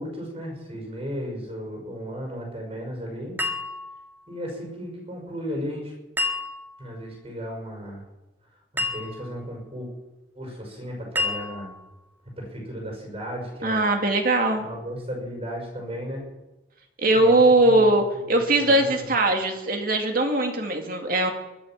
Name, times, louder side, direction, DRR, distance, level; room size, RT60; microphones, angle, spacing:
voice 1, 0.0-3.3 4.3-5.9 6.8-8.0 8.7-9.9 10.3-11.7 12.4-13.9 14.5-16.3 17.1-19.1, equal, 35° right, 1 dB, 5.9 m, -35 dB
sound 1, 3.4-4.3 6.2-6.9 8.8-9.5 11.1-11.9, left 2 dB, 10° right, 1.8 m, -30 dB
voice 2, 13.6-14.7 17.0-21.3, right 2 dB, 55° right, 4 dB, 2.4 m, -20 dB
22.0 x 8.6 x 7.6 m, 1.0 s
head